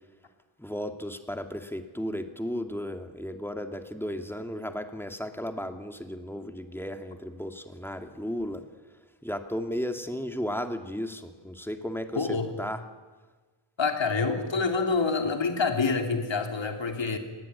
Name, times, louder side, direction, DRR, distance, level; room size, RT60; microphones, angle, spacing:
voice 1, 0.6-8.6 9.2-12.3 12.6-12.8, equal, 5° left, 6 dB, 2.4 m, -34 dB
voice 2, 12.2-12.5 13.8-17.2, left 4 dB, 65° left, 4 dB, 3.6 m, -27 dB
30.0 x 20.0 x 9.9 m, 1.3 s
wide cardioid pair, 100°, 47 cm